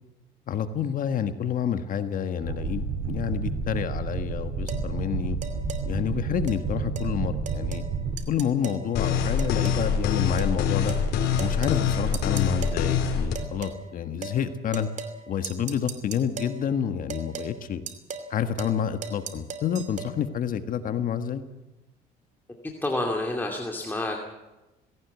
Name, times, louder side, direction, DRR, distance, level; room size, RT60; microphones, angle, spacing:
voice 1, 0.5-5.4 5.9-7.8 8.3-11.0 11.4-14.9 15.3-17.8 18.3-21.4, left 8 dB, 55° left, 9 dB, 1.5 m, -29 dB
sound 1, 2.4-8.1, right 5 dB, 70° right, 4.5 m, -30 dB
sound 2, 4.7-4.9 5.4-5.8 6.5-6.6 7.0-7.1 7.5-7.9 8.2-8.8 9.4-9.9 10.4-10.5 10.9-11.1 11.4-11.8 12.1-12.8 13.3-13.8 14.2-14.4 14.7-15.2 15.4-16.6 17.1-17.5 17.9-18.3 18.6-18.8 19.0-20.1, right 5 dB, 45° right, 2.7 m, -37 dB
sound 3, 9.0-13.4, left 6 dB, 80° left, 4.3 m, -25 dB
voice 2, 22.6-24.2, left 2 dB, 10° left, 1 dB, 2.6 m, -29 dB
19.0 x 17.0 x 8.3 m, 1.0 s
cardioid pair, 110°, 17 cm